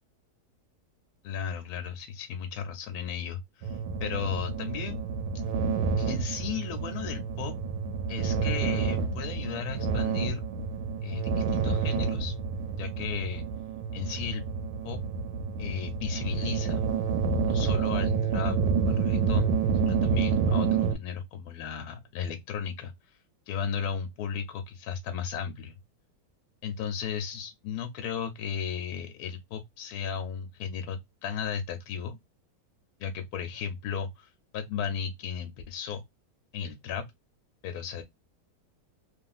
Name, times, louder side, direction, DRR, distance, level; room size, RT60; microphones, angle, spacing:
voice 1, 1.2-5.0 6.0-7.5 8.1-10.4 11.0-12.3 12.8-13.4 13.9-14.4 14.8-15.0 15.6-16.9 17.5-18.6 18.8-19.5 19.8-23.2 23.5-25.7 26.6-32.2 33.0-36.0 36.5-37.0 37.6-38.0, left 7 dB, 70° left, 1.0 m, -35 dB
sound 1, 3.6-20.9, right 5 dB, 70° right, 1.1 m, -29 dB
2.9 x 2.4 x 2.3 m
omnidirectional pair, 1.8 m